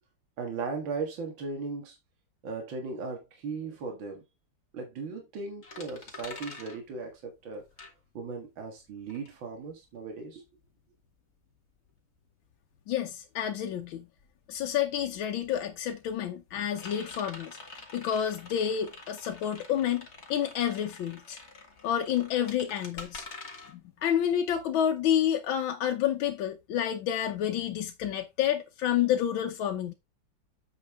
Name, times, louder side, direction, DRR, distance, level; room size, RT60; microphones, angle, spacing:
voice 1, 0.4-2.0 2.4-4.2 4.7-7.7 8.1-10.5, right 4 dB, 80° right, 2.4 m, -37 dB
sound 1, 5.6-8.5 8.8-25.2, left 3 dB, 35° left, 2.0 m, -47 dB
voice 2, 12.9-14.1 14.5-17.6 17.9-21.4 21.8-23.2 23.7-29.9, left 10 dB, 90° left, 1.6 m, -29 dB
8.1 x 5.4 x 3.5 m
omnidirectional pair, 2.1 m